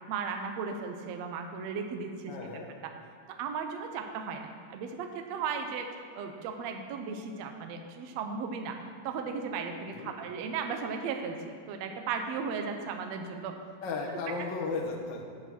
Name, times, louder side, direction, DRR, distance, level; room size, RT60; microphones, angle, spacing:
voice 1, 0.1-2.3 2.8-2.9 3.4-5.9 6.1-8.8 9.0-13.6, right 5 dB, 70° right, 4 dB, 1.7 m, -36 dB
voice 2, 2.3-2.7 9.9-10.1 13.8-15.3, left 3 dB, 65° left, -1 dB, 1.1 m, -35 dB
9.0 x 7.7 x 6.0 m, 2.3 s
omnidirectional pair, 3.8 m